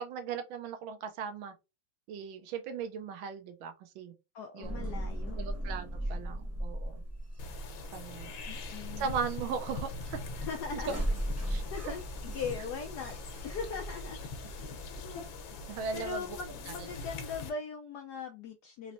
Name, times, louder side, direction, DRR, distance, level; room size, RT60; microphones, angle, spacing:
voice 1, 0.0-1.5 2.1-4.1 4.5-5.0 5.3-7.0 7.9-8.3 9.0-10.2 10.7-10.9 11.5-11.6 15.7-16.4 16.7-16.8, right 6 dB, 85° right, 1.5 m, -38 dB
voice 2, 4.3-5.4 8.5-9.1 10.4-11.0 11.7-13.1 13.4-14.2 15.9-18.9, left 5 dB, 75° left, 1.0 m, -40 dB
sound 1, 4.6-17.1, right 1 dB, 15° right, 0.5 m, -39 dB
sound 2, 7.4-17.5, left 4 dB, 90° left, 1.6 m, -43 dB
4.1 x 3.0 x 2.5 m
omnidirectional pair, 2.1 m